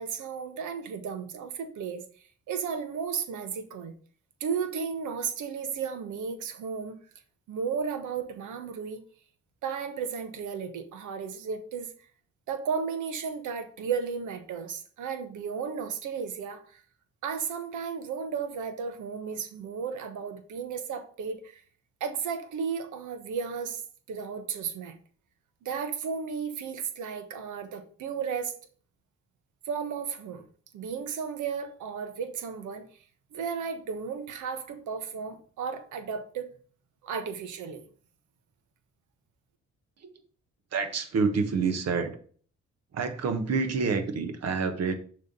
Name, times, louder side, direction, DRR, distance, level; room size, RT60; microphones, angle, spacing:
voice 1, 0.0-2.0 2.5-3.9 4.4-7.0 7.5-9.0 9.6-11.9 12.5-16.8 17.2-21.6 22.0-23.8 24.1-24.9 25.6-28.5 29.6-30.4 30.7-32.8 33.3-36.5 37.0-37.8, right 6 dB, 80° right, 1.3 m, -34 dB
voice 2, 40.7-42.2 42.9-44.9, right 5 dB, 55° right, 1.4 m, -28 dB
6.7 x 3.6 x 5.4 m
cardioid pair, 90°, 30 cm